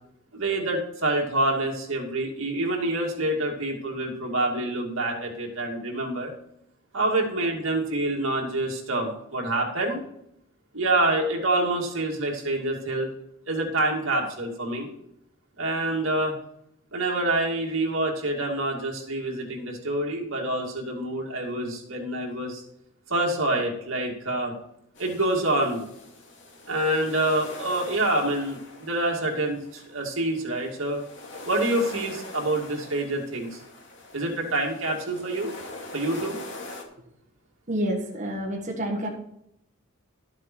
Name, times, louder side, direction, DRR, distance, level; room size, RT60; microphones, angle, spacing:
voice 1, 0.3-6.3 6.9-10.0 10.7-13.1 13.5-14.9 15.6-16.3 16.9-22.6 23.1-24.5 25.0-25.8 26.7-31.0 31.4-33.6 34.1-35.5 35.9-36.4, right 1 dB, 65° right, 0 dB, 2.6 m, -27 dB
sound 1, 25.0-36.8, left 2 dB, 60° left, 2.4 m, -43 dB
voice 2, 37.7-39.1, equal, 35° right, -3 dB, 1.7 m, -28 dB
12.5 x 7.5 x 4.6 m, 0.76 s
head